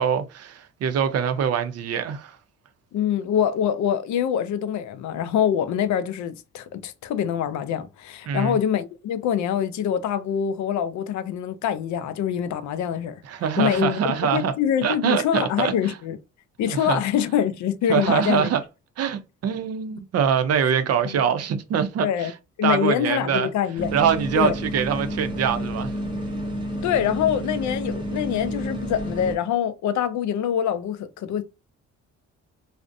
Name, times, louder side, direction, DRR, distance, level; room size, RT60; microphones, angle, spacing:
voice 1, 0.0-2.4 8.3-8.6 13.3-14.5 14.8-15.9 16.7-17.0 17.9-18.6 19.0-22.3 22.6-23.5 23.9-25.9, right 7 dB, 55° right, 0.5 m, -24 dB
voice 2, 2.9-13.2 13.6-16.2 16.6-18.5 21.0-21.2 22.0-22.3 22.6-23.9 24.3-24.5 26.8-31.4, left 9 dB, 70° left, 0.5 m, -25 dB
sound 1, 23.8-29.3, equal, 15° right, 0.9 m, -30 dB
2.5 x 2.0 x 2.5 m
cardioid pair, 90°, 30 cm